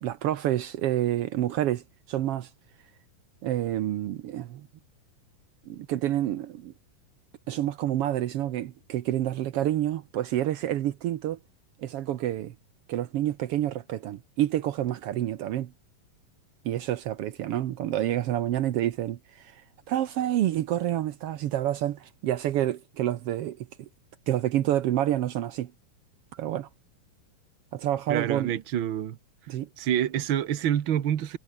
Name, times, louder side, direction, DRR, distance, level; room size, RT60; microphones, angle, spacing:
voice 1, 0.0-2.5 3.4-4.7 5.7-6.7 7.5-11.4 11.8-12.5 12.9-15.7 16.6-23.9 24.3-25.7 26.3-26.7 27.7-28.5 29.5-29.7, right 12 dB, 80° right, 1.3 m, -28 dB
voice 2, 28.1-29.2 29.8-31.4, right 10 dB, 60° right, 1.4 m, -27 dB
omnidirectional pair, 4.0 m